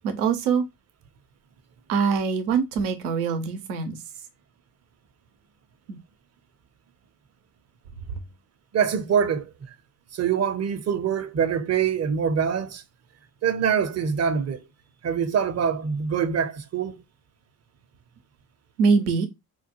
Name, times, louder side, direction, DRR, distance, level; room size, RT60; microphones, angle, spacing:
voice 1, 0.0-0.6 1.9-4.0 5.9-6.0 8.1-8.2 18.8-19.3, right 5 dB, 85° right, 0.7 m, -23 dB
voice 2, 8.7-9.7 10.1-12.8 13.4-14.6 15.0-17.0, right 7 dB, 35° right, 0.6 m, -24 dB
4.4 x 2.2 x 2.9 m
hypercardioid pair, 55°, 44 cm